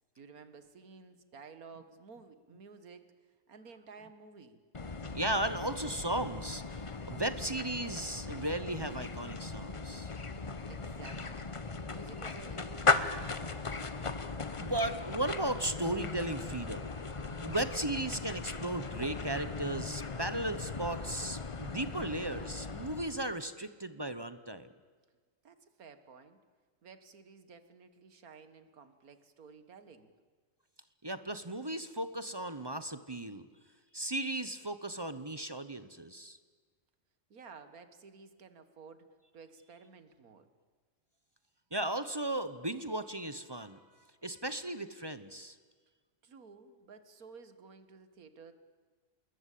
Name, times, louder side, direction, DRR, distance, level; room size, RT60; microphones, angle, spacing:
voice 1, 0.2-3.0 3.5-4.6 10.3-11.5 11.9-13.9 25.4-26.4 26.8-30.1 37.3-39.1 39.3-40.5 46.2-48.5, right 5 dB, 85° right, 11 dB, 2.0 m, -53 dB
sound 1, 4.7-23.4, left 3 dB, 25° left, 0.8 m, -37 dB
voice 2, 5.0-10.1 14.6-17.0 17.4-24.7 31.0-33.4 33.9-36.4 41.7-43.8 44.2-45.6, right 1 dB, 20° right, 12 dB, 0.8 m, -36 dB
28.0 x 21.0 x 8.5 m, 1.4 s
omnidirectional pair, 1.5 m